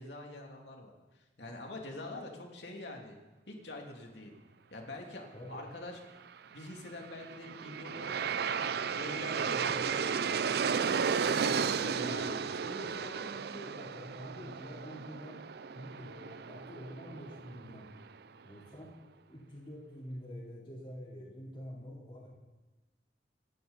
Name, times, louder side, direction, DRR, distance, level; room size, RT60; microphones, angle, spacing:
voice 1, 0.0-3.2 3.5-4.3 4.7-6.0 6.5-13.0, left 1 dB, 75° left, 1 dB, 2.7 m, -45 dB
voice 2, 5.3-5.6 9.6-9.8 12.0-12.3 12.6-15.4 15.7-17.9 18.4-18.9 19.3-22.3, equal, 30° left, -5 dB, 3.7 m, -46 dB
Aircraft, 7.0-18.1, right 6 dB, 60° right, 0.5 m, -34 dB
26.0 x 11.0 x 4.1 m, 1.1 s
head